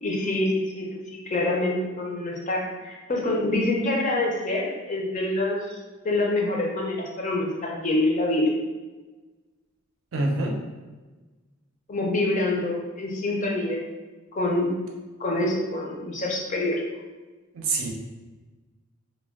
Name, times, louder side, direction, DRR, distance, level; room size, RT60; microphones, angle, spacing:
voice 1, 0.0-5.7 6.0-8.5 11.9-13.8 14.4-14.8 15.2-16.8, left 2 dB, 35° left, -1 dB, 0.4 m, -26 dB
voice 2, 10.1-10.6 17.5-17.9, right 2 dB, 70° right, 0 dB, 0.5 m, -25 dB
2.2 x 2.1 x 3.4 m, 1.2 s
head